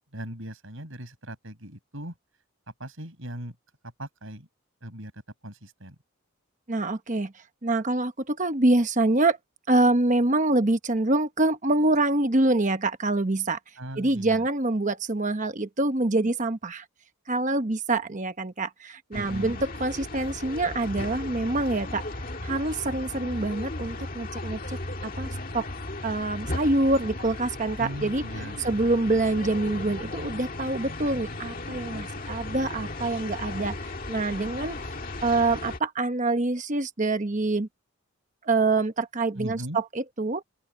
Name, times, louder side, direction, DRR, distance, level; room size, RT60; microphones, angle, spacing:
voice 1, 0.1-2.1 2.8-3.5 4.0-4.5 4.8-5.1 5.4-5.9 13.8-14.5 16.2-16.3 19.1-19.6 27.8-28.9 39.4-39.8, equal, 60° right, 6.6 m, -38 dB
voice 2, 6.7-9.4 9.7-13.6 14.0-16.8 17.3-22.0 22.4-25.3 25.5-25.7 26.0-28.2 28.6-34.8 35.2-37.7 38.4-40.4, right 2 dB, 35° right, 1.0 m, -25 dB
sound 1, 19.1-35.8, left 2 dB, 40° left, 2.0 m, -36 dB
open air
head